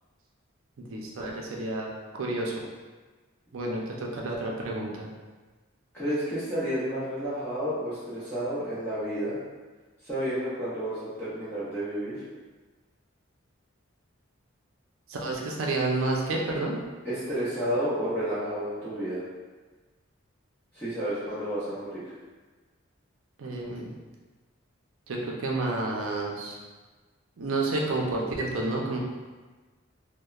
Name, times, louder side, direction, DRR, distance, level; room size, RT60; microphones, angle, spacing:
voice 1, 0.8-1.9 2.1-2.5 3.5-5.1 15.1-16.8 23.4-23.9 25.1-26.6 27.4-29.0, right 2 dB, 75° right, -1 dB, 0.5 m, -30 dB
voice 2, 5.9-9.4 10.0-12.2 17.0-19.2 20.7-22.0, equal, 10° left, -13 dB, 0.5 m, -31 dB
2.9 x 2.0 x 2.3 m, 1.3 s
head